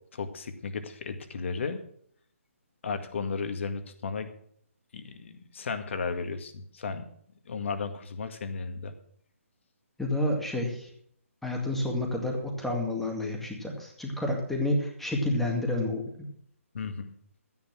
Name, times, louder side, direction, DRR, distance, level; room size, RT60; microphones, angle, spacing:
voice 1, 0.1-1.8 2.8-4.3 4.9-7.1 7.5-8.9 16.7-17.2, left 5 dB, 55° left, 8 dB, 1.9 m, -34 dB
voice 2, 10.0-10.9 11.4-16.0, left 1 dB, 5° left, 0 dB, 2.1 m, -29 dB
13.0 x 9.7 x 6.1 m, 0.65 s
hypercardioid pair, 155°, 8 cm